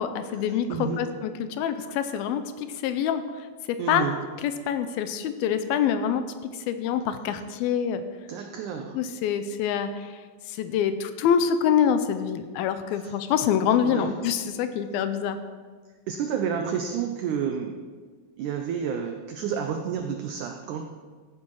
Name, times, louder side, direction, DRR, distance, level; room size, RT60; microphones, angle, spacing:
voice 1, 0.0-3.2 3.9-4.1 4.4-6.2 6.7-8.0 9.0-9.9 10.6-15.4, left 8 dB, 80° left, 10 dB, 2.5 m, -25 dB
voice 2, 0.7-1.1 3.8-4.2 8.3-9.0 12.9-13.1 13.8-14.2 16.1-17.8 18.4-20.8, right 7 dB, 85° right, 5 dB, 1.7 m, -30 dB
16.0 x 8.5 x 4.7 m, 1.5 s
omnidirectional pair, 4.4 m